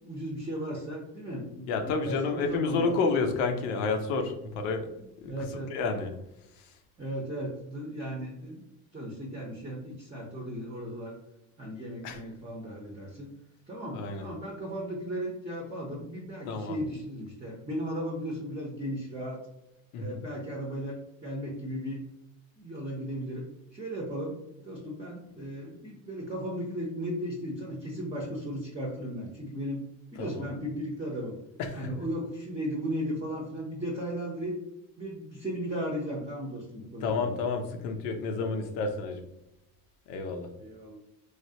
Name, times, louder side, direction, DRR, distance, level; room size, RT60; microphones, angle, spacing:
voice 1, 0.0-2.9 5.2-5.8 7.0-8.6 8.9-11.1 11.6-13.3 13.7-19.4 20.0-22.0 22.6-23.4 23.7-24.3 24.6-29.8 30.1-31.4 31.7-34.5 35.0-37.4 40.6-41.0, equal, 15° right, -1 dB, 0.7 m, -36 dB
voice 2, 1.7-4.9 5.2-6.2 6.6-6.8 12.0-12.2 13.9-14.3 16.5-16.8 19.9-20.2 30.2-30.5 31.6-31.9 37.0-39.3 40.1-40.5, left 4 dB, 85° left, 5 dB, 0.6 m, -30 dB
3.1 x 2.3 x 2.7 m, 0.87 s
supercardioid pair, 90°, 38 cm